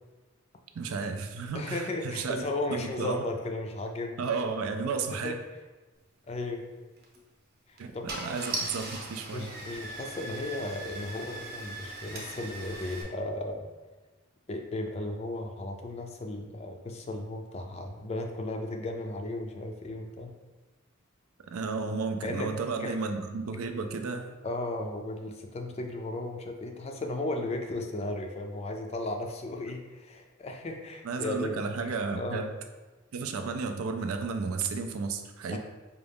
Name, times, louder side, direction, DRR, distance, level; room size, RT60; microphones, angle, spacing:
voice 1, 0.7-2.4 2.7-3.2 4.2-5.4 7.8-7.9 8.2-9.5 21.5-24.3 31.0-32.5 33.1-35.6, right 4 dB, 85° right, 6 dB, 0.4 m, -33 dB
voice 2, 1.5-4.2 5.1-5.4 6.3-6.6 7.7-8.2 9.3-13.7 14.5-20.3 22.2-22.5 22.8-23.0 24.4-32.4 35.5-35.6, left 2 dB, 30° left, 3 dB, 0.3 m, -35 dB
Car / Engine starting, 7.0-7.2 7.8-7.9 8.1-13.0, right 2 dB, 45° right, 0.7 m, -39 dB
5.0 x 2.4 x 3.4 m, 1.2 s
head